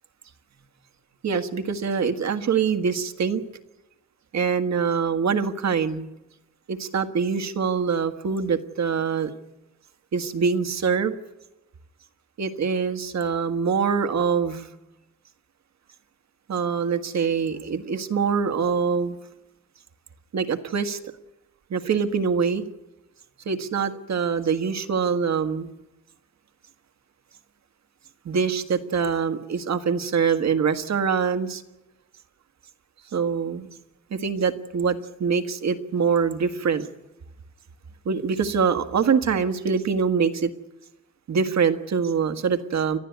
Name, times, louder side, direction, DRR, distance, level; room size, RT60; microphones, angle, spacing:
voice 1, 1.2-3.4 4.3-6.1 6.7-9.3 10.1-11.2 12.4-14.7 16.5-19.2 20.3-21.0 21.7-22.6 23.4-25.7 28.2-31.6 33.1-33.7 34.1-36.9 38.0-40.5 41.3-43.0, right 6 dB, 60° right, 8 dB, 1.7 m, -24 dB
30.0 x 12.0 x 9.3 m, 0.97 s
cardioid pair, 100°, 30 cm